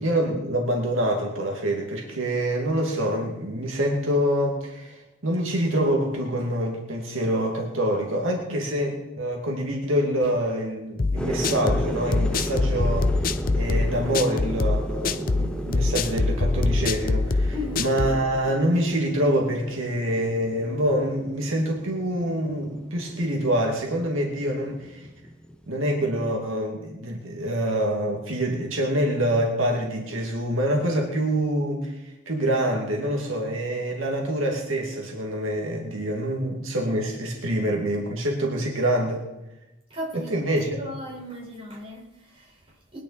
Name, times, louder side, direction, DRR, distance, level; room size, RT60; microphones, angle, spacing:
voice 1, 0.0-13.1 13.6-25.1 25.7-32.0 32.3-39.2 40.3-40.8, right 1 dB, 85° right, 1 dB, 2.3 m, -26 dB
sound 1, 11.0-18.2, left 3 dB, 45° left, 0.6 m, -24 dB
sound 2, 11.2-25.7, equal, 5° left, 0.8 m, -35 dB
voice 2, 17.5-17.9 39.9-43.0, left 1 dB, 30° right, -4 dB, 5.1 m, -37 dB
20.5 x 10.5 x 4.2 m, 0.98 s
head